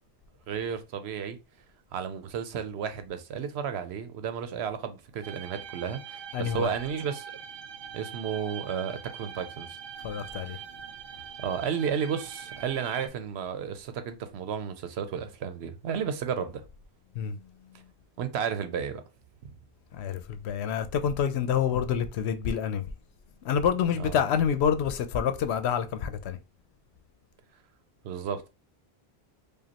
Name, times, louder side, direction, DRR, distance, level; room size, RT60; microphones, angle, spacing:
voice 1, 0.5-1.4 1.9-7.3 7.9-9.8 10.4-10.6 11.4-16.6 18.2-19.0 24.0-24.1 28.0-28.5, right 7 dB, 85° right, 0.9 m, -33 dB
sound 1, 5.2-13.1, right 8 dB, 60° right, 0.7 m, -43 dB
voice 2, 6.3-6.7 10.0-10.6 17.1-17.9 19.9-22.9 23.4-26.4, left 8 dB, 90° left, 0.9 m, -28 dB
5.0 x 2.3 x 2.8 m
omnidirectional pair, 1.1 m